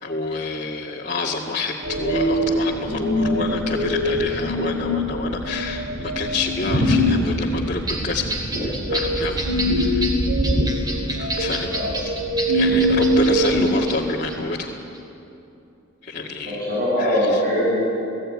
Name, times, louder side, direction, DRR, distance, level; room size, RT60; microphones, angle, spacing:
voice 1, 0.0-8.4 8.9-9.4 9.7-10.0 11.2-12.2 12.5-14.8 16.0-16.6 17.0-17.4, left 3 dB, 40° left, -6 dB, 2.0 m, -28 dB
sound 1, 1.8-13.7, equal, 70° right, 3.7 m, -23 dB
sound 2, 7.9-14.4 14.7-15.0, right 1 dB, 20° right, 3.2 m, -31 dB
voice 2, 16.4-17.9, equal, 50° right, -7 dB, 7.3 m, -22 dB
29.5 x 17.5 x 9.7 m, 2.8 s
head